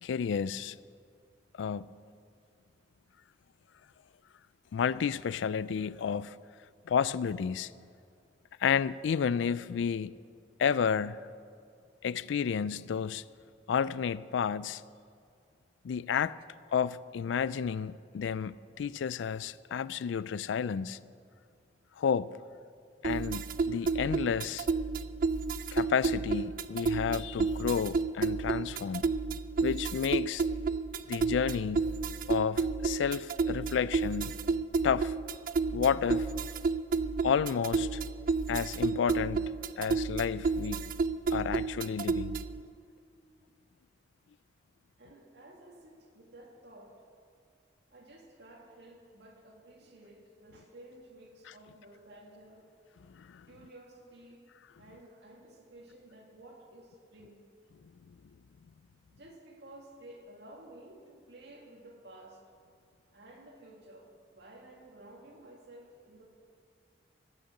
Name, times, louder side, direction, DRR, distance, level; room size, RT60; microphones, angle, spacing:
voice 1, 0.0-0.8 1.6-2.0 4.7-6.4 6.9-7.7 8.6-10.2 10.6-11.3 12.0-13.2 13.7-14.8 15.8-16.4 16.7-21.0 22.0-22.4 23.0-24.7 25.7-29.1 29.6-30.4 31.1-31.9 32.3-34.4 34.8-35.1 35.7-36.3 37.2-38.0 38.5-40.9 41.3-42.4 53.1-53.5, left 7 dB, 85° left, 0.3 m, -31 dB
sound 1, 23.0-42.6, right 4 dB, 50° right, 0.4 m, -31 dB
voice 2, 45.0-47.0 47.9-52.7 53.5-54.5 54.8-57.5 59.1-62.4 63.1-66.3, right 1 dB, 65° right, 2.2 m, -53 dB
17.5 x 6.6 x 7.7 m
head